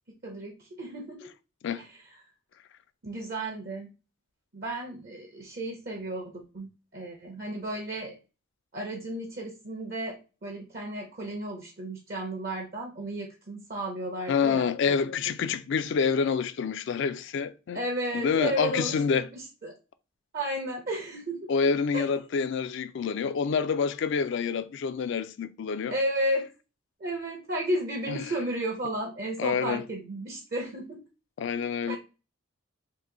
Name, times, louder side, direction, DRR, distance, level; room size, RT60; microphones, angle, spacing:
voice 1, 0.2-1.3 1.8-2.2 3.0-3.9 4.5-8.2 8.7-15.0 17.7-19.8 20.3-21.5 21.9-22.1 25.9-26.5 27.0-31.0 31.9-32.0, right 1 dB, 45° right, 0.6 m, -33 dB
voice 2, 14.3-17.8 18.1-19.3 21.5-25.9 28.1-28.2 29.4-29.8 31.4-32.0, left 6 dB, 55° left, 0.3 m, -27 dB
2.8 x 2.6 x 3.6 m
head